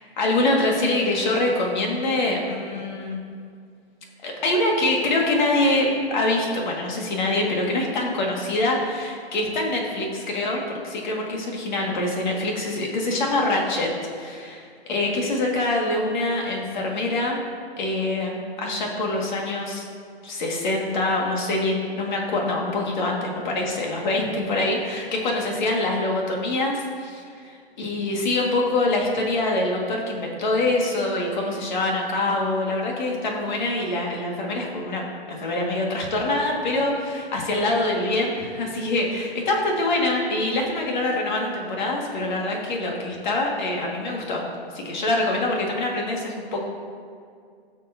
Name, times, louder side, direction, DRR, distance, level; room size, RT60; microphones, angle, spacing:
voice 1, 0.2-3.2 4.2-17.4 17.8-19.9 20.2-44.4 44.7-46.6, left 2 dB, 45° left, -1 dB, 2.1 m, -25 dB
16.0 x 6.7 x 2.8 m, 2.2 s
hypercardioid pair, 160°, 32 cm